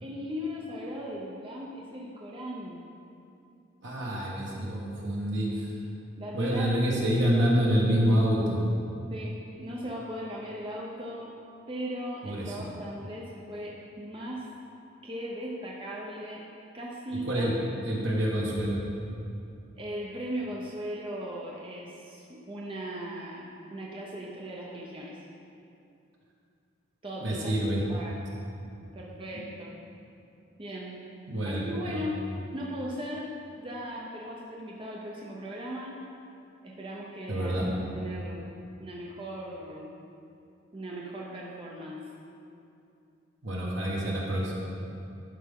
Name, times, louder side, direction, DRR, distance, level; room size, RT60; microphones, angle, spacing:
voice 1, 0.0-2.8 6.2-7.2 9.1-11.3 11.7-14.5 15.0-16.4 16.7-17.5 17.8-17.9 19.8-25.2 27.0-28.2 28.9-29.7 30.6-31.0 31.5-32.2 32.5-36.0 36.6-37.6 37.9-38.4 38.8-39.9 40.7-42.1, equal, 25° right, -3 dB, 0.7 m, -38 dB
voice 2, 3.8-5.7 6.3-8.6 12.2-12.6 17.1-17.5 17.8-18.8 27.2-27.8 31.3-32.0 37.3-37.7 43.4-44.5, equal, 65° right, -3 dB, 1.5 m, -27 dB
11.5 x 4.9 x 3.7 m, 2.6 s
head